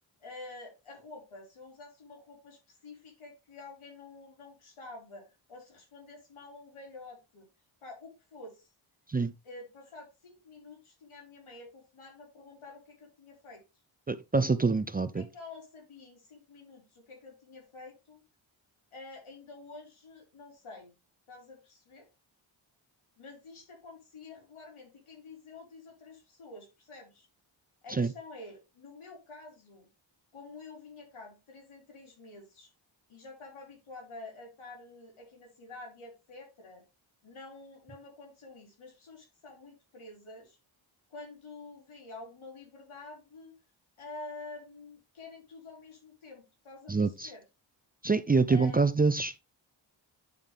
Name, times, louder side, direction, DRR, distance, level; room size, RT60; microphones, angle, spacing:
voice 1, 0.2-7.5 7.8-8.7 9.4-13.6 15.1-18.2 18.9-20.9 21.3-22.1 23.2-27.3 27.8-29.9 30.3-32.7 33.1-36.8 37.2-40.6 41.1-43.5 44.0-47.4 48.5-48.8, left 3 dB, 80° left, 4.4 m, -49 dB
voice 2, 14.1-15.2 28.0-28.1 46.9-47.3 48.0-49.3, right 4 dB, 20° right, 0.4 m, -26 dB
9.7 x 5.4 x 3.4 m
cardioid pair, 85°, 48 cm